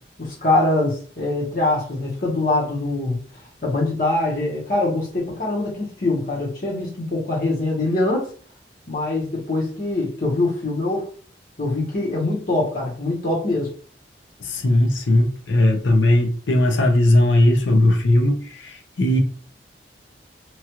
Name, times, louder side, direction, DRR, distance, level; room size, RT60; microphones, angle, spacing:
voice 1, 0.2-3.2 3.6-8.3 8.9-11.1 11.6-13.7, left 2 dB, 50° left, -4 dB, 1.1 m, -23 dB
voice 2, 14.4-19.2, left 1 dB, 90° left, 4 dB, 0.7 m, -18 dB
3.0 x 2.4 x 2.9 m, 0.43 s
head